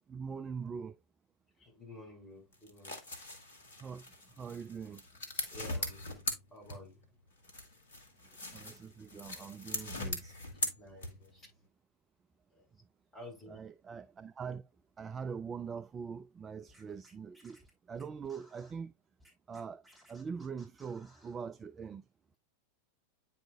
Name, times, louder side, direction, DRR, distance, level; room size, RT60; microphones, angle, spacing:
voice 1, 0.1-1.0 3.8-5.0 8.5-10.3 13.5-14.7 15.0-18.9 19.5-19.8 20.1-22.0, right 6 dB, 20° right, 0.3 m, -43 dB
voice 2, 1.6-3.0 5.5-6.2 6.5-7.0 10.8-11.5 12.5-12.7 13.1-13.6, left 1 dB, 20° left, 5.3 m, -51 dB
sound 1, 2.5-7.1 7.4-11.4, left 2 dB, 70° left, 1.5 m, -40 dB
Scratching (performance technique), 16.7-18.7 19.2-21.4, equal, ahead, 3.1 m, -62 dB
9.0 x 5.0 x 2.4 m
figure-of-eight pair, 90°, 0 cm